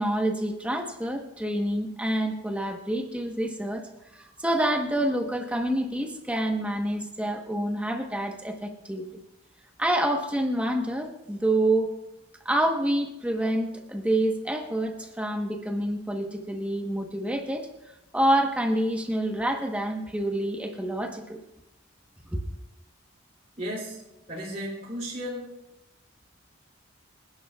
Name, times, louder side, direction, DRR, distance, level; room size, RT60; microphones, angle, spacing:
voice 1, 0.0-9.2 9.8-11.9 12.4-17.7 18.1-21.4 22.3-22.4, right 1 dB, 5° right, 2 dB, 1.1 m, -27 dB
voice 2, 23.6-24.0 24.3-25.6, equal, 35° right, -4 dB, 3.2 m, -34 dB
26.0 x 11.0 x 2.4 m, 0.94 s
head